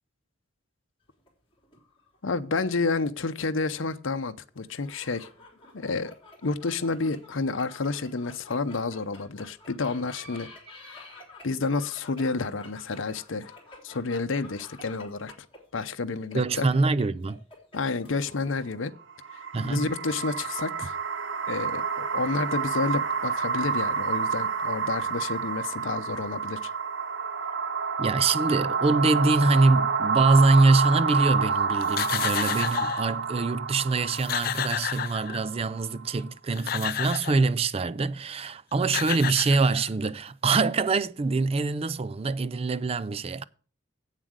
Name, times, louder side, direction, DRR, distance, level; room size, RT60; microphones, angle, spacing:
sound 1, 1.1-2.6 2.9-3.0 4.6-18.9, left 2 dB, 25° left, 3.4 m, -50 dB
voice 1, 2.2-5.3 5.7-6.2 6.4-10.5 10.9-11.0 11.4-13.5 13.8-15.3 15.7-16.7 17.7-18.9 19.6-21.0 21.5-26.7, left 3 dB, 75° left, 0.7 m, -30 dB
voice 2, 16.3-17.4 19.5-19.9 28.0-43.4, right 3 dB, 30° right, 0.4 m, -24 dB
sound 2, 19.1-36.3, right 5 dB, 65° right, 0.9 m, -29 dB
sound 3, 31.8-33.1 33.8-33.9 34.1-35.6 36.3-37.5 38.5-38.6 38.8-40.1, left 10 dB, 45° left, 0.4 m, -31 dB
8.3 x 7.4 x 6.4 m
head